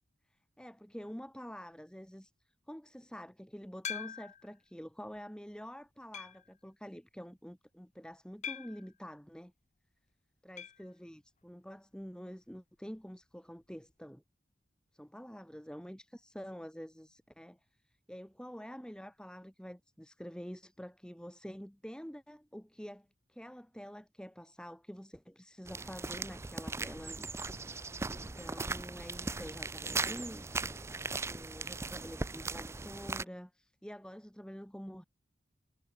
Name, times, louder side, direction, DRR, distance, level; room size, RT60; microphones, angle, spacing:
voice 1, 0.3-2.3 2.7-9.5 10.4-14.2 14.9-17.6 17.8-27.3 28.1-35.0, equal, 5° left, 2.6 m, -47 dB
sound 1, 3.8-4.5 5.1-5.2 6.1-6.5 8.4-8.9 10.6-10.9 11.1-11.2 11.5-11.6 13.6-13.7, left 8 dB, 40° left, 1.3 m, -42 dB
sound 2, 25.7-33.2, right 3 dB, 15° right, 0.5 m, -38 dB
head